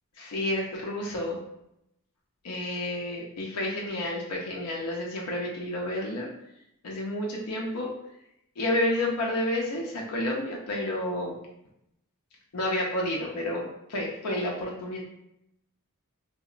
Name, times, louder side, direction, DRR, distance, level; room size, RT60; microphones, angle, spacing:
voice 1, 0.2-1.4 2.4-6.3 6.8-7.9 8.6-11.4 12.5-15.0, left 1 dB, 90° left, -2 dB, 0.5 m, -30 dB
2.8 x 2.0 x 2.4 m, 0.81 s
head